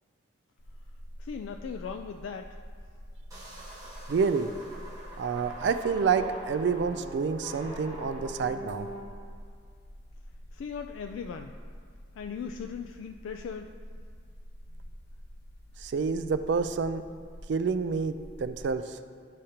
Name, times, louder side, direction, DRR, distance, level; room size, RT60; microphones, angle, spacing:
sound 1, 0.6-18.7, equal, 60° left, 0.7 m, -47 dB
voice 1, 1.2-2.6 10.5-11.6 12.1-13.7, left 6 dB, 85° left, 5 dB, 0.3 m, -38 dB
sound 2, 3.3-9.0, right 1 dB, 20° right, 1.2 m, -43 dB
voice 2, 4.1-4.5 5.2-8.9 15.8-17.0 17.5-19.0, right 5 dB, 65° right, 11 dB, 0.3 m, -28 dB
11.5 x 5.0 x 2.8 m, 2.1 s
head